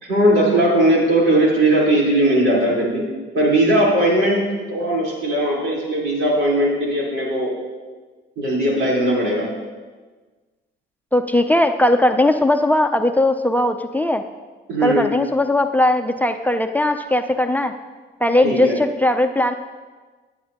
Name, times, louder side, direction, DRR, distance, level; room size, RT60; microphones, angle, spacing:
voice 1, 0.0-3.0 3.3-7.5 8.4-9.4 14.7-15.1 18.4-18.8, right 1 dB, 80° right, -5 dB, 4.0 m, -18 dB
voice 2, 11.1-14.2 14.8-17.7 18.2-19.5, left 1 dB, 10° left, 6 dB, 0.5 m, -18 dB
17.0 x 8.7 x 2.9 m, 1.4 s
cardioid pair, 90°, 20 cm